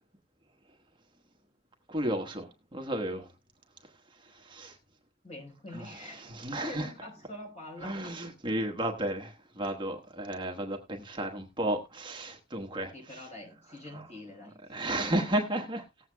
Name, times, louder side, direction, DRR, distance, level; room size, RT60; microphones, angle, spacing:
voice 1, 1.9-3.3 4.3-4.7 5.7-6.9 7.8-12.9 13.9-14.0 14.7-15.8, right 1 dB, 25° right, 1.2 m, -33 dB
voice 2, 5.2-8.2 12.9-15.4, left 1 dB, 35° left, 4.7 m, -45 dB
18.5 x 7.9 x 2.2 m
head